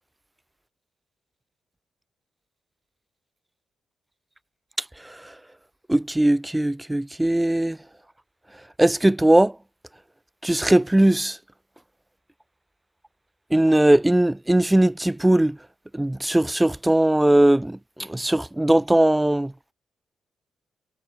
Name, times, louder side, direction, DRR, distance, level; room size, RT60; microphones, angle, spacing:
voice 1, 5.9-7.8 8.8-9.5 10.4-11.4 13.5-15.6 15.9-19.5, right 1 dB, 10° right, 2.7 m, -19 dB
cardioid pair, 75°, 0 cm